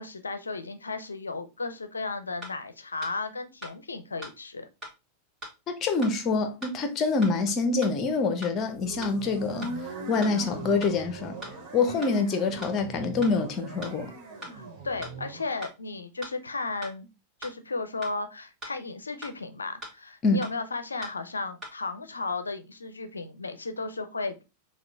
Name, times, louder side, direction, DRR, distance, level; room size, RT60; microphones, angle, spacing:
voice 1, 0.0-4.7 11.9-12.0 14.5-17.1 17.4-24.4, left 3 dB, 75° left, 0.5 m, -34 dB
sound 1, 2.4-2.5 3.0-3.1 3.6-3.7 4.2-4.3 4.8-4.9 5.4-5.5 6.0-6.1 6.6-6.7 7.2-7.3 7.8-7.9 8.4-8.5 9.0-9.1 9.6-9.7 10.2-10.3 10.8-10.9 11.4-11.5 12.0-12.1 12.6-12.7 13.2-13.3 13.8-13.9 14.4-14.5 15.0-15.1 15.6-15.7 16.2-16.3 16.8-16.9 17.4-17.5 18.0-18.1 18.6-18.7 19.2-19.3 19.8-19.9 20.4-20.5 21.0-21.1 21.6-21.7, equal, 20° right, 1.8 m, -40 dB
voice 2, 5.7-9.7 10.1-11.4 11.7-14.1 20.2-20.4, left 4 dB, 30° left, 0.8 m, -26 dB
sound 2, 8.7-15.5, right 3 dB, 40° right, 1.6 m, -40 dB
5.8 x 2.4 x 3.4 m
figure-of-eight pair, 90°, 0 cm